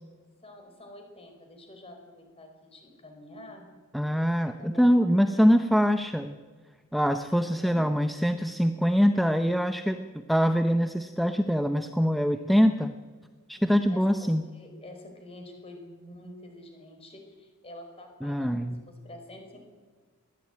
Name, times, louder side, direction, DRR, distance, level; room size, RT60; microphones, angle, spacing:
voice 1, 0.4-3.7 4.4-4.9 5.3-5.5 7.2-7.9 13.5-19.6, left 1 dB, 25° left, 4 dB, 4.6 m, -47 dB
voice 2, 3.9-6.4 6.9-12.9 13.5-14.4 18.2-18.8, equal, ahead, 7 dB, 0.6 m, -24 dB
21.0 x 15.0 x 8.9 m, 1.5 s
head